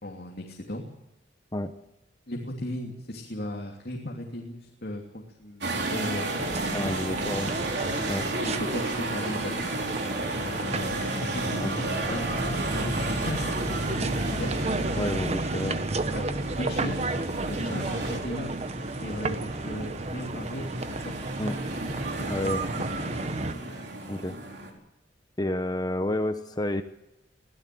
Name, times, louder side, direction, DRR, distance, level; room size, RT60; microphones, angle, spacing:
voice 1, 0.0-0.8 2.3-6.9 7.2-7.4 8.4-9.9 10.6-12.3 12.7-14.5 16.1-17.0 17.5-18.6 19.0-21.2 22.2-22.5 22.9-23.0, left 1 dB, 55° left, 0 dB, 3.1 m, -37 dB
sound 1, 5.6-24.7, right 2 dB, 65° right, 4.4 m, -33 dB
sound 2, 6.4-23.5, right 2 dB, 35° right, 1.0 m, -32 dB
voice 2, 6.7-7.5 8.1-8.2 11.6-12.0 15.0-15.8 21.4-21.5 22.3-22.6 24.1-24.4 25.4-26.8, left 1 dB, 20° left, 8 dB, 1.0 m, -30 dB
23.5 x 16.5 x 7.9 m, 0.88 s
head